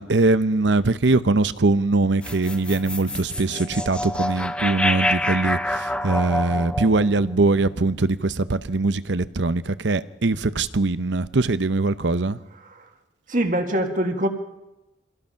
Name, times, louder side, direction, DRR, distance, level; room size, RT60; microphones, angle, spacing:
voice 1, 0.0-12.4, right 3 dB, 80° right, 0.8 m, -22 dB
sound 1, 2.2-8.5, left 1 dB, 5° left, 0.7 m, -27 dB
voice 2, 13.3-14.3, right 1 dB, 45° right, 2.0 m, -24 dB
25.0 x 18.0 x 5.8 m
head